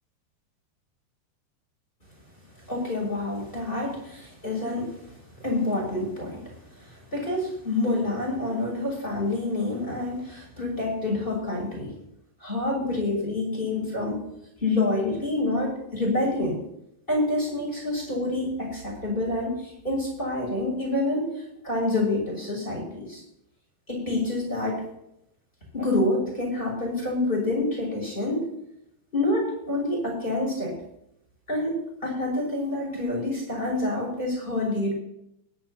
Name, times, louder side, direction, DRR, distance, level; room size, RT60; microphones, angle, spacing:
voice 1, 2.6-11.9 12.4-14.2 14.6-16.6 17.1-23.2 23.9-24.9 25.7-28.5 29.1-30.7 31.5-34.9, left 2 dB, 10° left, -2 dB, 6.1 m, -27 dB
21.5 x 10.5 x 3.0 m, 0.79 s
omnidirectional pair, 5.0 m